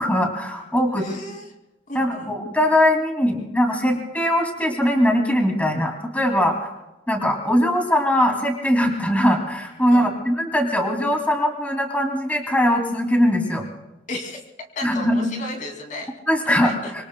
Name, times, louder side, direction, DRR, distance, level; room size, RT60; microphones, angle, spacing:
voice 1, 0.0-1.1 1.9-6.7 7.1-13.6 14.8-15.3 16.3-16.7, equal, 10° left, 2 dB, 2.5 m, -21 dB
voice 2, 0.9-1.5 1.9-2.4 3.9-4.0 9.9-10.1 14.1-14.4 14.7-16.1 16.5-16.9, left 2 dB, 45° left, 3 dB, 2.5 m, -34 dB
25.5 x 24.5 x 2.2 m, 0.98 s
head